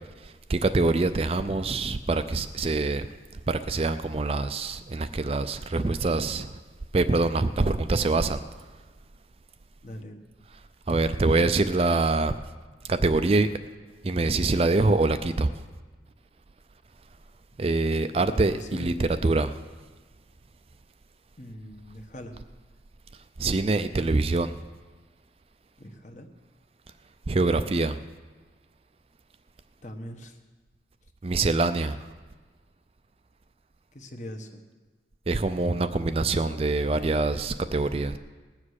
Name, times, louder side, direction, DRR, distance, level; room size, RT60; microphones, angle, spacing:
voice 1, 0.2-3.1 3.5-6.6 6.9-8.4 10.9-12.3 12.8-13.5 14.0-15.5 17.6-19.6 23.4-24.5 27.3-28.0 31.2-32.0 35.3-38.2, right 3 dB, 35° right, 0.4 m, -24 dB
voice 2, 9.8-10.2 18.1-18.9 21.4-22.4 25.8-26.3 29.8-30.4 33.9-34.6, equal, 45° left, 1.2 m, -41 dB
19.5 x 7.4 x 6.4 m
head